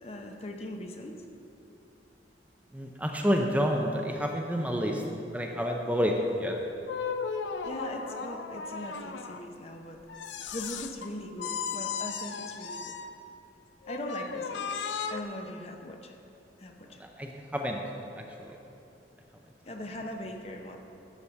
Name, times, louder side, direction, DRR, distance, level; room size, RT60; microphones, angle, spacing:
voice 1, 0.0-1.2 7.6-10.0 10.5-12.9 13.9-16.2 16.6-17.0 19.7-20.8, left 1 dB, 35° left, 3 dB, 0.8 m, -40 dB
voice 2, 2.7-5.0 5.3-6.5 17.2-17.8, equal, 10° right, 1 dB, 0.6 m, -28 dB
sound 1, 6.8-9.4 10.1-11.1 11.4-13.2 13.9-15.2, left 6 dB, 85° left, 0.5 m, -36 dB
11.5 x 5.0 x 7.1 m, 2.8 s
head